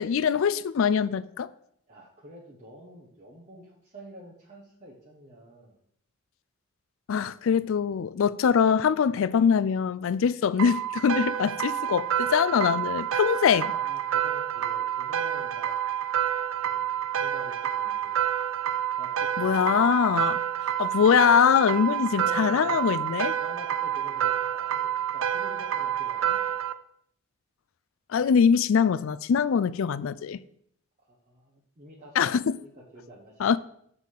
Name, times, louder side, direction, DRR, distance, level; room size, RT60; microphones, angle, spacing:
voice 1, 0.0-1.5 7.1-13.7 19.4-20.4 20.8-23.3 28.1-30.4 32.2-32.6 33.4-33.6, left 7 dB, 65° left, 0.3 m, -23 dB
voice 2, 1.9-5.8 13.7-15.8 16.6-18.2 19.0-20.0 22.1-22.8 23.4-26.4 31.0-33.6, equal, 35° right, 1.1 m, -48 dB
sound 1, 10.6-26.7, right 10 dB, 65° right, 0.4 m, -28 dB
7.3 x 4.0 x 6.4 m
head